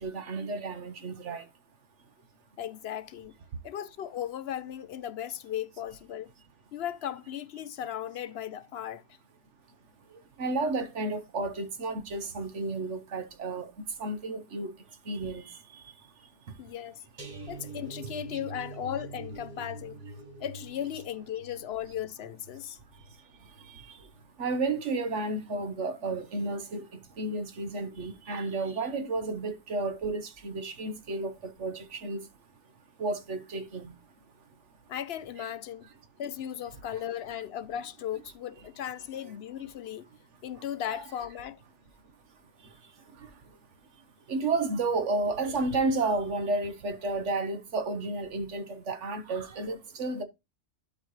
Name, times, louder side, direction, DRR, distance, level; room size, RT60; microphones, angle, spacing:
voice 1, 0.0-1.4 10.4-13.7 14.0-14.7 15.1-15.4 24.4-26.8 27.2-32.2 33.0-33.9 40.9-41.1 44.3-50.2, right 3 dB, 80° right, 1.5 m, -32 dB
voice 2, 2.6-3.3 3.6-6.3 6.7-9.0 16.6-17.0 17.5-20.0 20.4-22.8 34.9-35.9 36.2-40.1 40.4-41.6, left 10 dB, 65° left, 0.8 m, -36 dB
sound 1, 17.2-24.3 24.6-24.9 25.2-25.4, right 2 dB, 40° right, 1.9 m, -45 dB
12.0 x 5.0 x 3.2 m
omnidirectional pair, 1.2 m